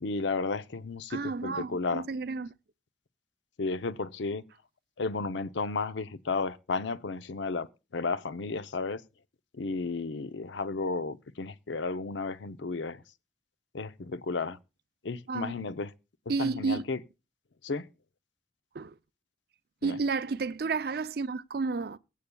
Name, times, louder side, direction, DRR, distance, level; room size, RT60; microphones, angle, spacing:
voice 1, 0.0-2.0 3.6-4.4 5.0-7.7 7.9-9.0 9.5-13.0 13.7-14.6 15.0-15.9 16.4-17.0 17.6-17.8 19.8-19.9, left 4 dB, 80° left, 0.6 m, -33 dB
voice 2, 1.1-2.5 15.3-15.6 16.3-16.8 18.7-18.9 19.8-22.0, right 4 dB, 55° right, 0.5 m, -31 dB
22.5 x 8.4 x 2.3 m
head